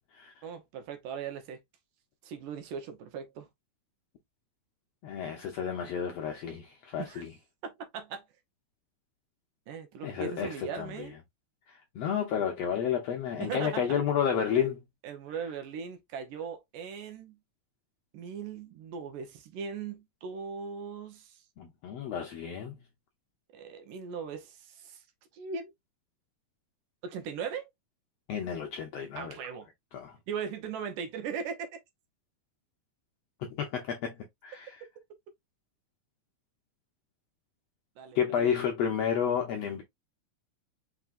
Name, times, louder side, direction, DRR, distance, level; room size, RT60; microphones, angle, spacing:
voice 1, 0.4-1.6 2.2-3.5 7.0-7.2 7.6-8.2 9.7-11.2 13.4-13.9 15.0-17.4 18.1-21.4 23.5-25.0 25.3-25.7 27.0-27.7 29.2-29.7 30.3-31.7 38.0-38.5, right 6 dB, 80° right, 2.6 m, -39 dB
voice 2, 5.0-7.3 10.0-11.1 11.7-14.8 21.6-22.8 28.3-29.4 29.9-30.2 33.4-34.8 38.1-39.8, left 8 dB, 75° left, 1.5 m, -31 dB
5.9 x 3.6 x 2.5 m
omnidirectional pair, 3.8 m